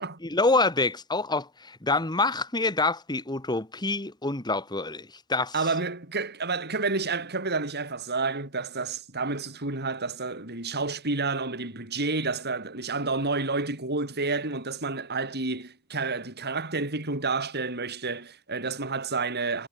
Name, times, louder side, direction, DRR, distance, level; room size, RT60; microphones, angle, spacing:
voice 1, 0.2-5.5, left 3 dB, 20° left, 2.1 m, -26 dB
voice 2, 5.5-19.7, right 3 dB, 50° right, 8.0 m, -30 dB
head